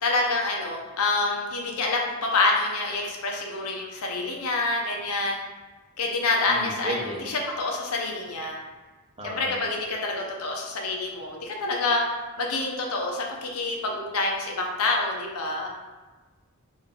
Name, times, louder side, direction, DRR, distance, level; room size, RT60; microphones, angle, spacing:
voice 1, 0.0-5.4 6.0-8.6 9.2-12.0 12.4-15.7, left 3 dB, 80° left, 0 dB, 0.7 m, -27 dB
voice 2, 6.5-7.2 9.2-9.5, right 1 dB, 25° right, -2 dB, 0.6 m, -33 dB
3.8 x 2.6 x 3.6 m, 1.3 s
head